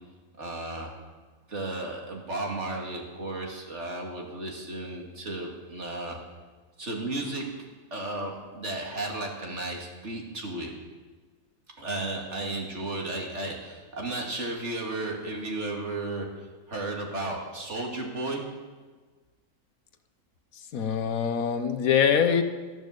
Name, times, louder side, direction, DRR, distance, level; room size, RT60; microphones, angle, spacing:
voice 1, 0.4-0.9 1.5-6.2 6.8-7.5 7.9-10.8 11.8-18.5, right 2 dB, 55° right, 0 dB, 2.5 m, -34 dB
voice 2, 20.7-22.4, left 7 dB, 80° left, 9 dB, 1.4 m, -23 dB
13.0 x 10.5 x 6.5 m, 1.4 s
omnidirectional pair, 1.4 m